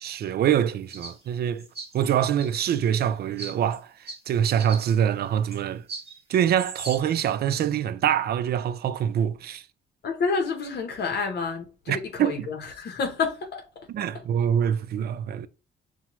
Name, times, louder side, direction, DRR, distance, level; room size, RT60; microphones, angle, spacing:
voice 1, 0.0-1.7 1.9-5.8 6.3-9.6 11.9-12.5 13.9-15.5, right 9 dB, 55° right, 0.4 m, -25 dB
sound 1, 0.9-1.2 1.6-2.7 3.4-3.8 4.1-4.2 4.6-4.8 5.5-5.6 5.9-6.2 6.6-7.0, right 3 dB, 30° right, 1.3 m, -38 dB
voice 2, 10.0-13.9, left 4 dB, 55° left, 0.8 m, -29 dB
5.8 x 2.2 x 2.9 m
cardioid pair, 90°, 20 cm